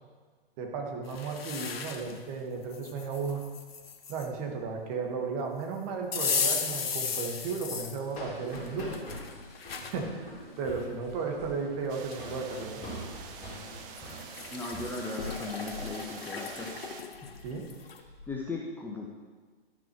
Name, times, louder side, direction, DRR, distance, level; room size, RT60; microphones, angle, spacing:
voice 1, 0.6-3.5 4.1-9.0 9.8-10.3 10.6-12.8 17.4-17.7, right 4 dB, 40° right, 2 dB, 1.7 m, -34 dB
sound 1, 1.1-2.2 2.7-4.3 6.1-8.0 8.5-10.0 10.6-10.7 11.7-11.8 12.1-12.7 14.0-18.0, left 6 dB, 75° left, 1.0 m, -36 dB
sound 2, 7.4-15.4 15.7-16.0 16.4-16.7 17.1-18.3, left 1 dB, 25° left, 2.9 m, -44 dB
sound 3, 11.9-17.0, right 7 dB, 15° right, 0.3 m, -47 dB
voice 2, 14.5-17.3 18.3-19.1, left 3 dB, 5° left, -3 dB, 0.7 m, -38 dB
12.0 x 6.1 x 4.5 m, 1.4 s
hypercardioid pair, 120°, 30 cm